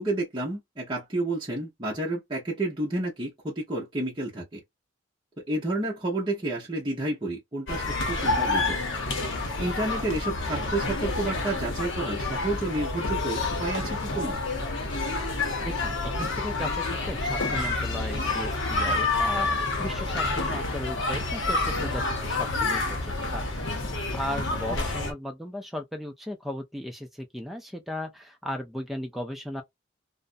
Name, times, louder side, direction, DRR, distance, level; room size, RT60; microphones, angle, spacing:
voice 1, 0.0-4.6 5.4-8.8 9.6-14.4, right 2 dB, 25° right, 0.8 m, -30 dB
sound 1, 7.7-25.1, left 3 dB, 60° left, 0.7 m, -28 dB
voice 2, 15.6-29.6, left 1 dB, ahead, 0.4 m, -36 dB
2.5 x 2.1 x 2.5 m
head